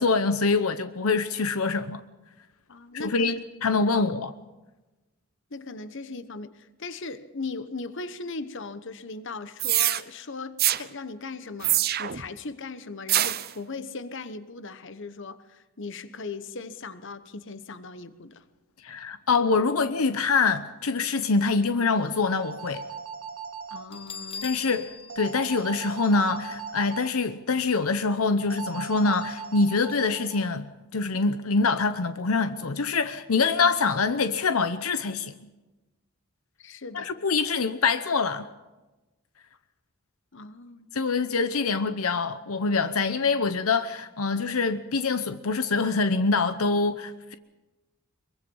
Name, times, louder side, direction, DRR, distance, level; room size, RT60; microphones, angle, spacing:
voice 1, 0.0-2.0 2.9-4.3 18.8-22.8 24.4-24.9 25.2-35.3 36.9-38.5 40.9-47.3, left 4 dB, 80° left, 0.9 m, -25 dB
voice 2, 2.7-3.4 3.9-4.1 5.5-18.4 23.7-24.8 36.6-37.2 40.3-41.0, left 3 dB, 60° left, 1.1 m, -38 dB
sound 1, 9.6-10.0 10.6-10.8 11.6-12.2 13.1-13.5, right 13 dB, 45° right, 0.8 m, -24 dB
sound 2, 21.9-23.8 25.1-27.1 28.5-30.5, right 6 dB, 90° right, 2.3 m, -38 dB
Bell, 23.9-26.6, left 5 dB, 25° left, 1.1 m, -41 dB
24.0 x 23.0 x 5.5 m
head